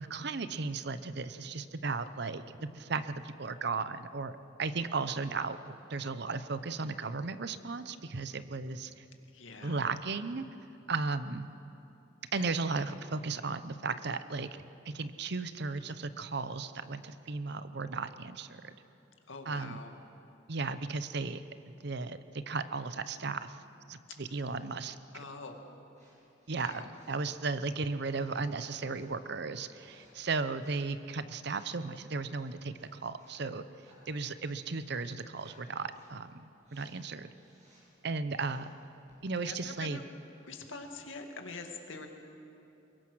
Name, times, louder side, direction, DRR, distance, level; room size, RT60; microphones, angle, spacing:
voice 1, 0.0-9.0 9.6-10.4 10.9-11.5 12.3-14.5 14.9-18.7 19.5-19.8 20.5-21.4 21.8-22.2 22.5-23.6 23.9-25.0 26.5-33.6 34.1-36.4 36.7-37.3 38.0-38.7 39.2-40.0, right 4 dB, 60° right, 12 dB, 0.8 m, -35 dB
voice 2, 9.3-9.8 12.3-12.5 19.3-19.9 25.1-25.6 26.6-26.9 39.4-40.0 40.4-42.1, left 3 dB, 80° left, 4 dB, 2.1 m, -44 dB
sound 1, 25.9-26.1 26.4-27.2 27.9-29.1 29.6-30.1 30.5-30.9 31.3-31.7 32.3-33.4 33.7-34.9 35.3-35.6 35.8-36.2 36.6-37.0 37.3-37.8 38.3-38.7 39.1-39.2, right 1 dB, 35° right, 7.4 m, -65 dB
22.5 x 22.0 x 6.3 m, 2.9 s
head